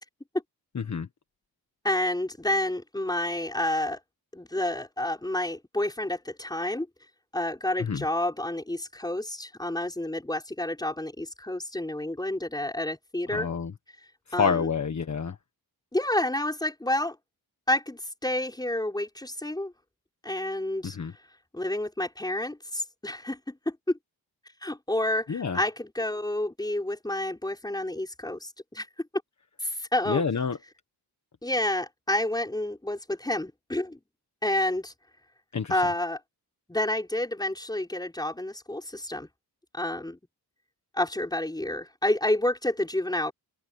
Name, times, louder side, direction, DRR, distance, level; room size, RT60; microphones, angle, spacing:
voice 1, 0.7-1.1 7.8-8.0 13.3-13.7 14.4-15.3 20.8-21.1 25.3-25.6 30.1-30.6 35.5-35.7, left 6 dB, 45° left, 1.5 m, -28 dB
voice 2, 1.8-4.0 4.3-6.9 7.3-13.5 14.3-14.7 15.9-17.2 17.7-19.7 20.2-21.0 21.5-24.0 24.6-28.9 29.6-30.2 31.4-34.0 34.4-34.9 35.7-36.2 36.7-39.3 39.7-40.2 40.9-43.3, left 1 dB, 10° left, 6.0 m, -29 dB
open air
wide cardioid pair, 180°, 39 cm